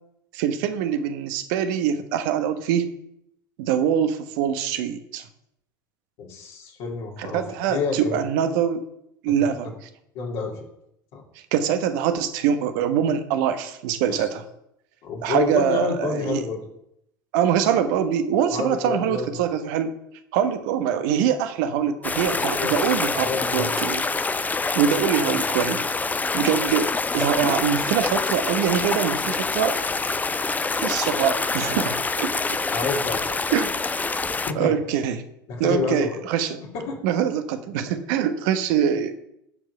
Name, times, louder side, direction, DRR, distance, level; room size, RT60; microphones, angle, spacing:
voice 1, 0.3-2.9 3.6-5.2 7.2-8.8 9.2-9.7 11.5-14.4 15.2-16.4 17.3-19.9 20.3-24.0 24.7-25.8 26.3-29.8 30.8-32.6 33.5-33.8 34.6-35.2 35.6-36.6 37.0-39.2, right 8 dB, 65° right, 9 dB, 1.1 m, -24 dB
voice 2, 6.2-7.4 7.7-8.2 9.4-9.5 10.1-10.6 11.1-11.2 14.1-14.3 15.0-16.7 18.5-19.4 22.6-23.7 25.2-25.4 32.7-33.4 34.5-34.7 35.5-36.2 36.7-37.0, left 5 dB, 55° left, -1 dB, 2.7 m, -29 dB
sound 1, 22.0-34.5, left 3 dB, 15° left, 0.6 m, -26 dB
14.0 x 4.9 x 5.6 m, 0.79 s
hypercardioid pair, 75°, 11 cm